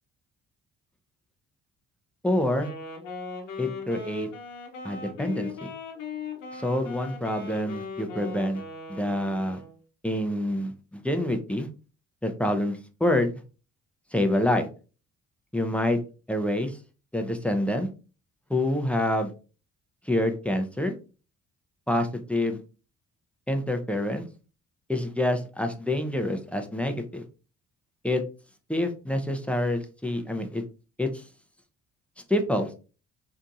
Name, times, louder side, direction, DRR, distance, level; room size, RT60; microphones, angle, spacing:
voice 1, 2.2-2.7 3.6-4.3 4.8-5.7 6.5-8.6 8.9-9.6 10.0-11.7 12.2-13.3 14.1-14.7 15.5-16.0 16.3-16.7 17.1-17.9 18.5-19.3 20.1-20.9 21.9-22.6 23.5-24.2 24.9-27.2 28.0-28.2 28.7-30.6 31.0-31.1 32.3-32.7, left 1 dB, 5° left, 5 dB, 0.5 m, -27 dB
Wind instrument woodwind instrument, 2.5-9.8, left 4 dB, 90° left, 0.8 m, -39 dB
3.4 x 2.7 x 2.5 m, 0.34 s
cardioid pair, 90°, 30 cm